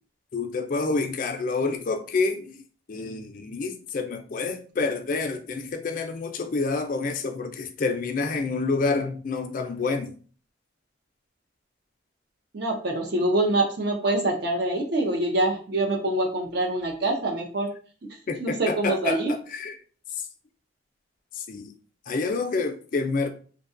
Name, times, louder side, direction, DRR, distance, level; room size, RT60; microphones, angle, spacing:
voice 1, 0.3-2.6 2.9-10.1 18.3-19.8 20.1-20.3 21.3-21.7 22.1-23.3, left 4 dB, 40° left, 0.3 m, -28 dB
voice 2, 12.5-17.7 18.4-19.3, right 2 dB, 55° right, 0.6 m, -25 dB
2.6 x 2.2 x 2.4 m
head